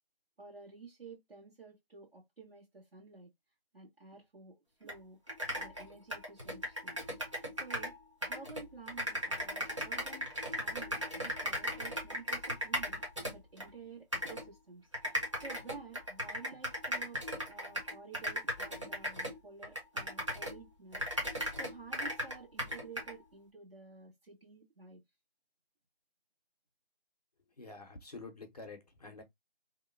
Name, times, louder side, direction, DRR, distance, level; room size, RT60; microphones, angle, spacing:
voice 1, 0.4-3.3 3.7-7.3 7.6-7.9 8.2-10.3 10.6-13.0 13.3-25.0, right 4 dB, 70° right, 1.3 m, -52 dB
sound 1, 4.9-5.0 5.3-8.0 8.2-13.7 14.1-14.4 14.9-20.6 20.9-23.1, equal, 30° right, 0.7 m, -37 dB
voice 2, 27.6-29.2, left 3 dB, 40° left, 0.7 m, -48 dB
2.8 x 2.1 x 2.4 m
figure-of-eight pair, 170°, 31 cm